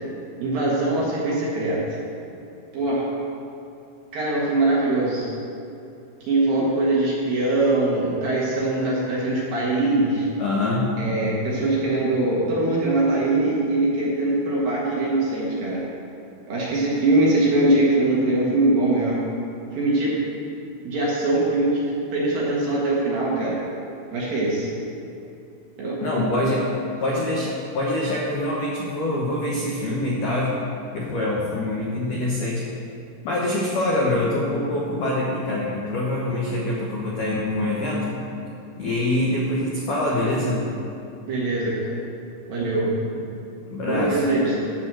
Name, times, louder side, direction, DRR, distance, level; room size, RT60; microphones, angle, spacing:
voice 1, 0.4-1.8 2.7-3.0 4.1-5.3 6.2-10.3 11.0-15.8 16.5-19.2 19.7-20.2 20.8-21.8 22.1-23.6 24.1-24.7 25.8-25.9 41.3-41.9 42.5-43.2 43.8-44.5, right 2 dB, 60° right, -5 dB, 2.7 m, -22 dB
voice 2, 10.4-10.9 26.0-26.7 27.0-30.6 30.9-32.6 33.2-38.1 38.8-40.6 43.7-44.2, left 1 dB, 85° left, -4 dB, 1.8 m, -24 dB
12.0 x 4.7 x 7.5 m, 2.7 s
omnidirectional pair, 5.6 m